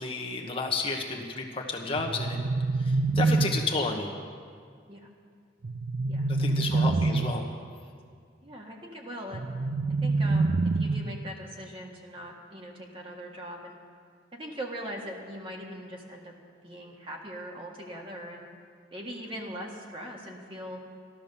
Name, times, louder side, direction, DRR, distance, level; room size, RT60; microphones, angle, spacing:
voice 1, 0.0-2.4 2.8-4.2 6.4-7.4, left 3 dB, 30° left, 0 dB, 1.1 m, -31 dB
sound 1, 1.9-3.9 5.6-7.5 9.3-11.3, right 3 dB, 55° right, 0.5 m, -26 dB
voice 2, 6.6-6.9 8.4-9.5 9.9-13.8 14.3-16.3 16.6-18.5 18.9-20.8, equal, 30° right, 0 dB, 1.6 m, -41 dB
13.5 x 12.5 x 6.7 m, 2.1 s
head